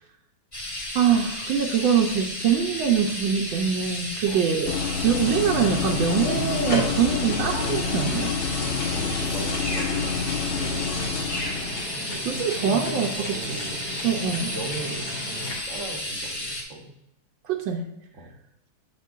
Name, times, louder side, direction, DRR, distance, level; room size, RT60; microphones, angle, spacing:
sound 1, 0.5-16.6, left 1 dB, 15° left, 1.6 m, -33 dB
voice 1, 0.9-8.3 12.2-13.6 14.0-14.5 17.5-17.8, right 7 dB, 85° right, 2 dB, 1.5 m, -24 dB
sound 2, 4.6-11.8, left 6 dB, 75° left, 0.6 m, -29 dB
sound 3, 5.2-15.5, equal, 55° left, 2.4 m, -35 dB
voice 2, 8.7-11.3 12.1-13.9 14.1-16.9 18.1-18.3, right 2 dB, 50° right, 1 dB, 1.0 m, -39 dB
8.2 x 7.0 x 2.5 m, 0.86 s
omnidirectional pair, 2.1 m